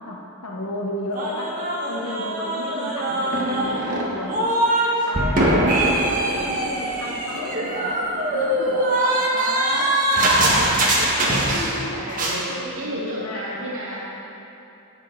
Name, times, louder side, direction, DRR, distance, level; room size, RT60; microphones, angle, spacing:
voice 1, 0.4-1.5 1.9-4.5 5.1-8.0 8.3-10.9 11.2-13.5, left 2 dB, 85° left, -3 dB, 0.9 m, -33 dB
sound 1, 1.1-4.9 5.1-11.8 12.1-12.4, right 1 dB, 35° right, 1.3 m, -22 dB
voice 2, 11.6-14.0, right 1 dB, 70° right, -6 dB, 2.1 m, -33 dB
14.5 x 6.3 x 4.0 m, 2.9 s
head